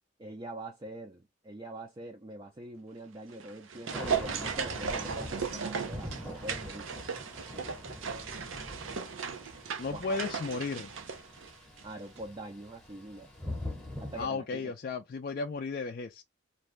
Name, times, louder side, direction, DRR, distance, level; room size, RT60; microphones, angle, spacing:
voice 1, 0.2-6.9 9.9-10.2 11.8-13.3 14.0-14.7, right 1 dB, 25° right, 0.4 m, -44 dB
sound 1, 3.3-11.9 12.2-12.3, right 6 dB, 85° right, 0.5 m, -36 dB
Thunder / Rain, 3.9-14.3, left 1 dB, 5° left, 0.7 m, -43 dB
voice 2, 9.8-10.9 14.2-16.2, left 4 dB, 50° left, 0.3 m, -34 dB
2.6 x 2.2 x 3.1 m
head